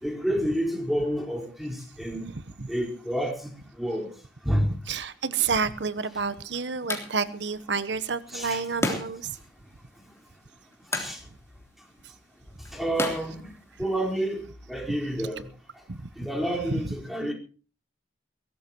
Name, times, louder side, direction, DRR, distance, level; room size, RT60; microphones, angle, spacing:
voice 1, 0.0-2.2 2.7-3.5 3.8-4.1 4.4-4.8 8.3-9.0 10.9-11.2 12.7-13.5 13.8-14.4 14.7-15.5 16.2-17.3, equal, ahead, 4.4 m, -29 dB
voice 2, 2.3-2.7 4.9-9.3 14.9-15.3 15.9-16.0 16.7-16.9, right 5 dB, 80° right, 1.0 m, -30 dB
sound 1, 5.7-14.2, left 2 dB, 15° left, 3.3 m, -37 dB
22.5 x 17.5 x 3.0 m
head